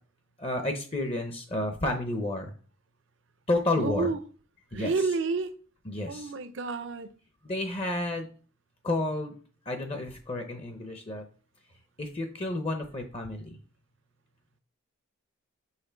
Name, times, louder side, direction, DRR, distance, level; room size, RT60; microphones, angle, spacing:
voice 1, 0.4-2.5 3.5-4.1 4.7-4.9 5.9-6.3 7.4-8.3 8.8-9.3 9.7-11.2 12.0-13.6, left 2 dB, 25° left, 0.6 m, -31 dB
voice 2, 3.8-4.2 4.7-5.5 6.1-7.1, right 4 dB, 60° right, 0.6 m, -30 dB
5.7 x 4.3 x 4.5 m
head